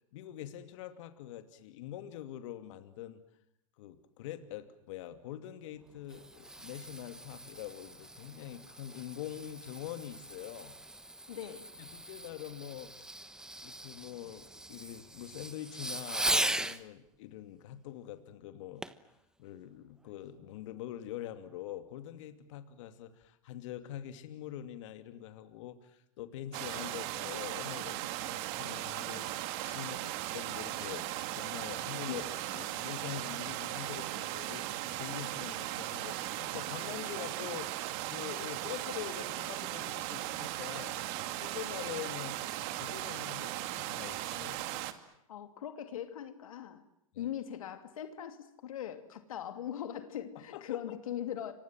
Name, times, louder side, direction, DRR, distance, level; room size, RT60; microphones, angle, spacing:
voice 1, 0.1-3.2 3.8-10.8 11.8-13.2 13.6-18.8 19.4-31.1 31.3-32.2 32.7-34.7 35.0-37.7 38.1-41.0 41.4-44.6 47.1-47.3 50.5-51.0, left 12 dB, 65° left, 2.7 m, -44 dB
Fireworks, 5.8-16.8 18.8-19.1 19.7-19.8, right 1 dB, 5° right, 1.2 m, -39 dB
voice 2, 11.3-11.7 32.1-32.7 45.3-46.8 47.2-51.5, left 10 dB, 80° left, 2.7 m, -41 dB
sound 1, 26.5-44.9, right 15 dB, 55° right, 2.7 m, -38 dB
29.5 x 25.0 x 7.7 m
hypercardioid pair, 115°, 17 cm